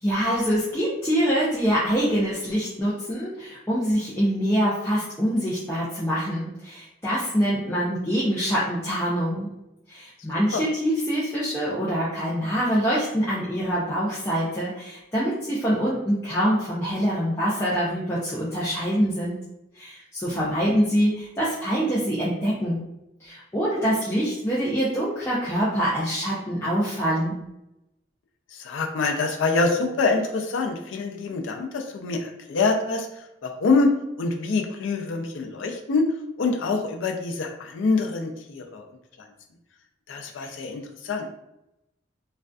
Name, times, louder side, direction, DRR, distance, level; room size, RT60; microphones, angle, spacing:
voice 1, 0.0-9.5 9.9-19.4 19.7-22.9 23.2-27.4 40.4-40.5, equal, 15° left, -9 dB, 0.4 m, -25 dB
voice 2, 28.5-33.1 33.4-33.9 34.2-36.1 36.4-38.8 40.1-41.3, left 3 dB, 85° left, 3 dB, 0.4 m, -25 dB
2.5 x 2.2 x 2.2 m, 0.86 s
head